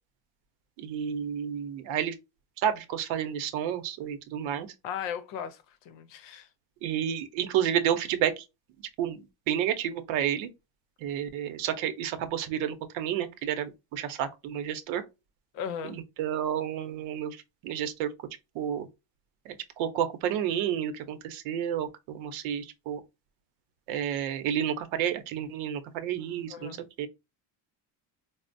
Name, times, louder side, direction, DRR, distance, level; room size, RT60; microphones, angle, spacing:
voice 1, 0.8-2.2 2.6-4.7 6.8-8.5 9.0-10.5 11.0-15.0 15.8-18.1 18.5-18.9 19.4-23.0 23.9-27.1, right 9 dB, 80° right, 0.7 m, -30 dB
voice 2, 4.8-6.5 15.5-16.0 26.5-26.8, left 8 dB, 70° left, 0.7 m, -37 dB
4.2 x 2.0 x 2.5 m
cardioid pair, 155°, 46 cm